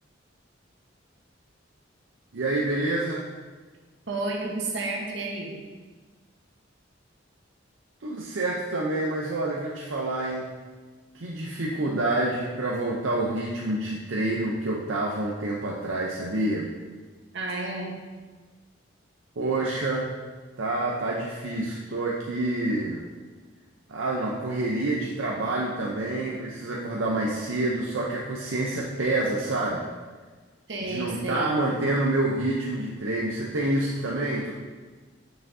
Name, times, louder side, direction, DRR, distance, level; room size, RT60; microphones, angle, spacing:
voice 1, 2.3-3.3 8.0-10.5 11.1-16.7 19.4-20.1 20.6-23.0 23.9-29.9 30.9-34.5, right 2 dB, 80° right, -3 dB, 0.6 m, -27 dB
voice 2, 4.1-5.6 17.3-18.0 30.7-31.5, right 2 dB, 65° right, -1 dB, 1.1 m, -31 dB
6.9 x 6.1 x 2.7 m, 1.4 s
head